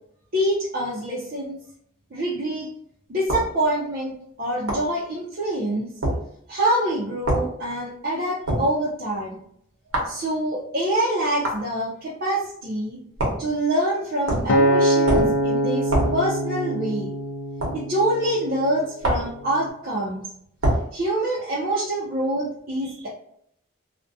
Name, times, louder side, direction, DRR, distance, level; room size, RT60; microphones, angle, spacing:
voice 1, 0.3-1.6 2.1-2.7 3.1-4.1 4.4-5.9 6.5-9.4 10.0-13.0 13.4-17.1 17.7-20.2 20.9-23.1, right 1 dB, 45° right, -6 dB, 0.5 m, -25 dB
sound 1, 3.3-3.5 4.7-4.9 6.0-6.2 7.3-7.5 8.5-8.7 9.9-10.2 11.4-11.6 13.2-13.5 14.3-14.6 15.1-15.4 15.9-16.2 17.6-17.8 19.0-19.3 20.6-20.9, right 1 dB, 80° right, 0.8 m, -23 dB
Acoustic guitar, 14.5-18.8 19.4-19.7, right 1 dB, 65° left, 0.3 m, -23 dB
2.4 x 2.1 x 2.5 m, 0.70 s
head